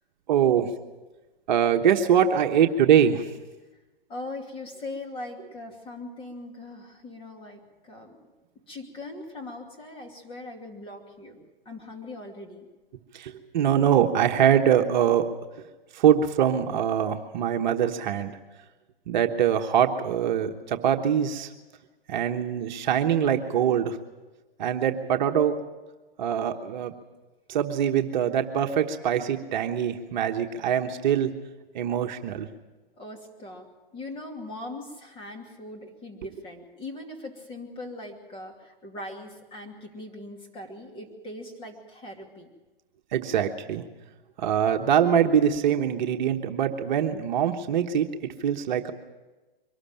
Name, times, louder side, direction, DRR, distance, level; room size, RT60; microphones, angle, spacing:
voice 1, 0.3-0.7 1.5-3.3 13.1-15.2 15.9-18.3 19.1-21.5 22.1-24.0 24.6-25.5 26.2-26.9 27.5-31.3 31.7-32.5 43.1-43.8 44.4-48.1 48.4-48.9, right 9 dB, 50° right, 5 dB, 1.2 m, -23 dB
voice 2, 4.1-8.1 8.7-11.4 11.6-12.7 33.0-42.5, left 2 dB, 20° left, 2 dB, 2.7 m, -40 dB
23.5 x 13.0 x 8.8 m, 1.2 s
hypercardioid pair, 140°, 29 cm